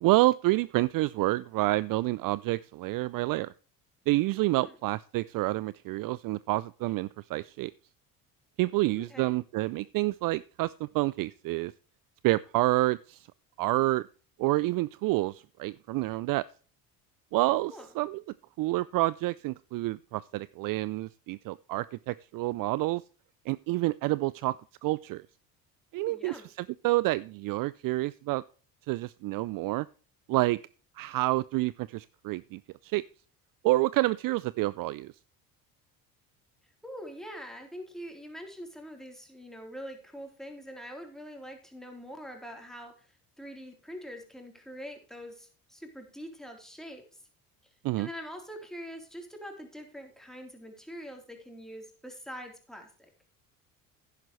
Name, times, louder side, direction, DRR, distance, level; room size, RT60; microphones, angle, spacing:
voice 1, 0.0-3.5 4.1-7.7 8.6-11.7 12.2-13.2 13.6-14.1 14.4-16.4 17.3-18.2 18.6-23.0 23.5-24.6 24.8-25.2 25.9-26.4 26.8-28.4 28.9-29.9 30.3-30.6 31.0-33.0 33.6-35.1 47.8-48.1, right 19 dB, 50° right, 19 dB, 0.4 m, -28 dB
voice 2, 9.0-9.4 17.7-17.9 26.0-26.5 36.8-43.1 43.4-47.0 48.0-53.1, equal, ahead, 3 dB, 3.7 m, -44 dB
10.5 x 10.5 x 3.2 m, 0.39 s
hypercardioid pair, 65°, 43 cm